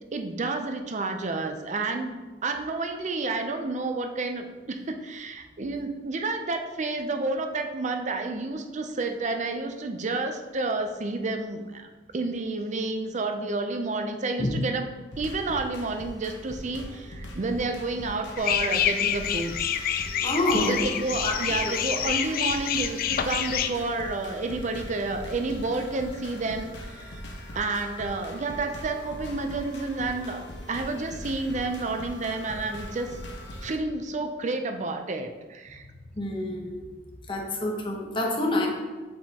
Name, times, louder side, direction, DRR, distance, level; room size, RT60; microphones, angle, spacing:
voice 1, 0.0-14.9 15.2-19.6 19.9-20.0 20.5-27.2 27.5-33.2 33.6-35.9, right 3 dB, 45° right, 6 dB, 0.5 m, -30 dB
sound 1, 15.1-33.8, equal, 90° left, 0.9 m, -41 dB
sound 2, 18.4-23.7, left 9 dB, 55° left, 0.4 m, -27 dB
voice 2, 20.2-20.8 21.2-21.3 21.7-21.8 36.2-36.9 37.3-38.7, left 1 dB, 30° left, 0 dB, 0.9 m, -27 dB
7.3 x 4.8 x 2.9 m, 1.3 s
head